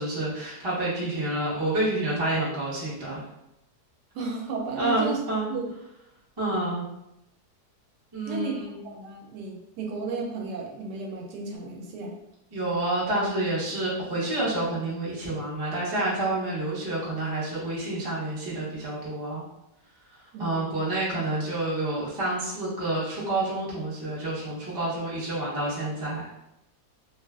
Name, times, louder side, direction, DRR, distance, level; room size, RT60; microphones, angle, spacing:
voice 1, 0.0-3.2 4.8-5.4 6.4-6.8 8.1-8.7 12.5-19.4 20.4-26.3, right 2 dB, 30° right, -8 dB, 0.4 m, -28 dB
voice 2, 4.1-5.2 5.5-5.7 8.3-12.2 20.3-20.8, right 4 dB, 80° right, 0 dB, 1.1 m, -34 dB
2.8 x 2.3 x 2.3 m, 0.87 s
omnidirectional pair, 1.8 m